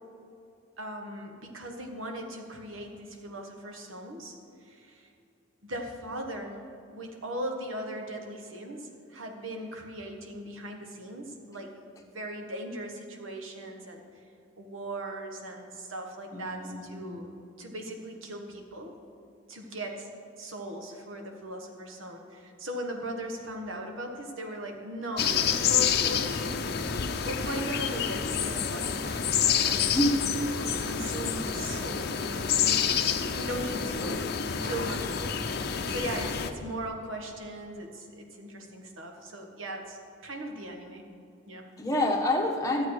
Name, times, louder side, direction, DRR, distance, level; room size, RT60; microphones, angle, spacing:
voice 1, 0.8-4.3 4.6-5.1 5.6-6.6 6.9-11.7 12.0-14.0 14.6-18.9 19.5-20.1 20.4-26.5 27.2-30.0 30.5-32.8 33.3-41.1 41.5-41.7, right 1 dB, 90° right, 3 dB, 1.4 m, -39 dB
voice 2, 16.3-17.2 29.9-30.3 34.0-34.2 41.8-42.9, left 1 dB, 15° left, 0 dB, 1.2 m, -28 dB
sound 1, 25.2-36.5, left 7 dB, 50° left, 0.6 m, -28 dB
12.5 x 8.0 x 4.7 m, 2.6 s
head